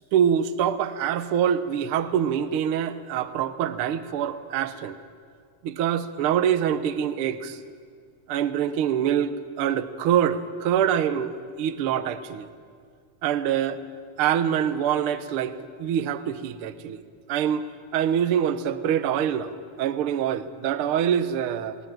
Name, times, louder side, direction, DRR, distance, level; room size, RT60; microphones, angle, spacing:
voice 1, 0.1-5.0 5.6-7.6 8.3-12.5 13.2-13.8 14.2-17.0 17.3-21.8, right 9 dB, 65° right, 12 dB, 1.4 m, -25 dB
21.0 x 19.5 x 9.1 m, 2.1 s
omnidirectional pair, 3.5 m